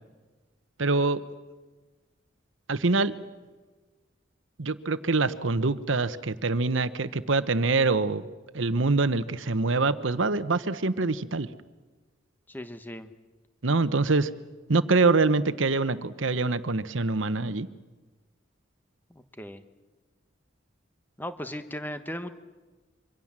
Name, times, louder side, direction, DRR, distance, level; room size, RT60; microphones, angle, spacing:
voice 1, 0.8-1.2 2.7-3.1 4.6-8.2 8.5-11.5 13.6-14.3 14.7-17.7, right 3 dB, 75° right, 13 dB, 1.0 m, -25 dB
voice 2, 12.5-13.1 19.1-19.6 21.2-22.3, left 1 dB, 10° left, 10 dB, 1.2 m, -37 dB
26.5 x 24.5 x 7.5 m, 1.3 s
head